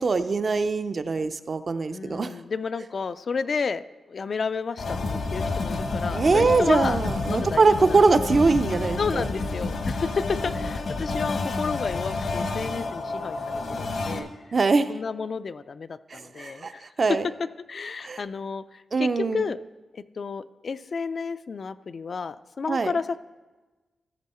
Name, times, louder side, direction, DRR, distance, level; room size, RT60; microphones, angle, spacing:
voice 1, 0.0-2.3 6.1-9.3 14.5-14.9 16.1-16.7 17.0-17.3 18.0-18.2 18.9-19.5 22.7-22.9, right 4 dB, 45° right, 10 dB, 0.5 m, -22 dB
voice 2, 1.9-7.0 7.3-8.0 9.0-14.3 14.9-16.8 17.7-19.6 19.9-23.2, left 5 dB, 55° left, 13 dB, 0.3 m, -31 dB
sound 1, 4.8-14.2, left 3 dB, 70° left, 1.0 m, -29 dB
14.5 x 6.1 x 4.3 m, 1.2 s
wide cardioid pair, 100°, 0 cm